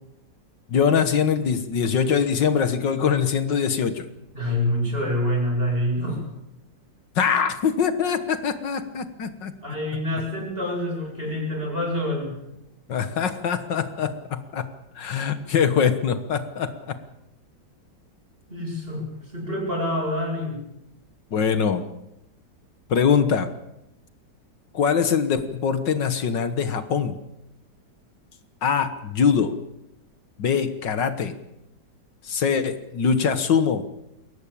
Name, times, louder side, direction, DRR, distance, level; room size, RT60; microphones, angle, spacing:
voice 1, 0.7-4.1 7.2-9.5 12.9-17.0 21.3-21.8 22.9-23.5 24.7-27.2 28.6-29.5 30.4-31.3 32.2-33.8, left 7 dB, 75° left, 10 dB, 2.0 m, -23 dB
voice 2, 4.3-6.2 9.6-12.3 18.5-19.1 19.3-20.6, left 1 dB, 30° right, 0 dB, 8.4 m, -26 dB
22.5 x 17.0 x 8.7 m, 0.89 s
omnidirectional pair, 2.0 m